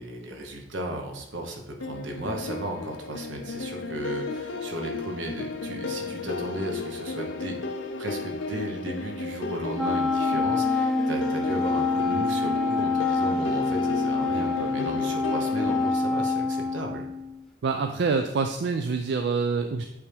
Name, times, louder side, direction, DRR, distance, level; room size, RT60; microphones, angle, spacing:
voice 1, 0.0-7.6 8.0-17.0, right 1 dB, 80° right, 2 dB, 1.0 m, -35 dB
sound 1, 1.8-15.9, left 4 dB, 75° left, 0.6 m, -34 dB
Wind instrument woodwind instrument, 9.8-17.4, left 3 dB, ahead, 0.5 m, -26 dB
voice 2, 17.6-19.8, right 4 dB, 65° right, 6 dB, 0.4 m, -26 dB
8.1 x 3.4 x 3.4 m, 0.81 s
head